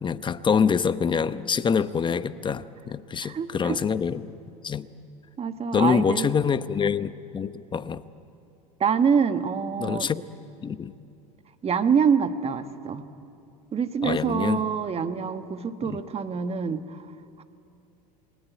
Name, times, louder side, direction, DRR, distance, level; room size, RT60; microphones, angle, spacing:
voice 1, 0.0-4.3 4.6-4.9 5.7-8.0 9.8-10.2 10.6-10.9 14.0-14.6 15.8-16.0, left 6 dB, 25° left, 13 dB, 0.9 m, -25 dB
voice 2, 3.2-3.8 5.4-6.3 8.8-10.1 11.6-13.0 13.7-17.1 17.4-17.5, right 6 dB, 30° right, 9 dB, 1.5 m, -25 dB
28.5 x 20.5 x 9.3 m, 2.7 s
hypercardioid pair, 95°, 21 cm